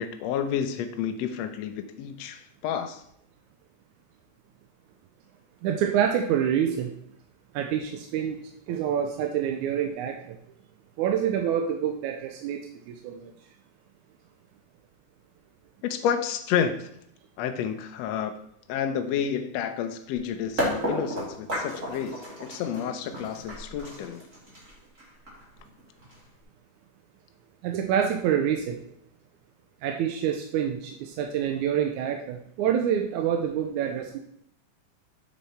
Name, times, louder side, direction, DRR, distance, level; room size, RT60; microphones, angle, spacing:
voice 1, 0.0-3.0 15.8-16.9 17.4-18.3 18.7-24.2, left 8 dB, 80° left, 7 dB, 1.5 m, -30 dB
voice 2, 5.6-6.9 7.5-8.4 8.7-10.4 11.0-12.6 12.9-13.3 27.6-28.8 29.8-34.2, right 9 dB, 80° right, 3 dB, 2.0 m, -27 dB
sound 1, 20.6-26.4, equal, 25° right, 3.1 m, -33 dB
7.6 x 6.7 x 4.2 m, 0.71 s
omnidirectional pair, 3.6 m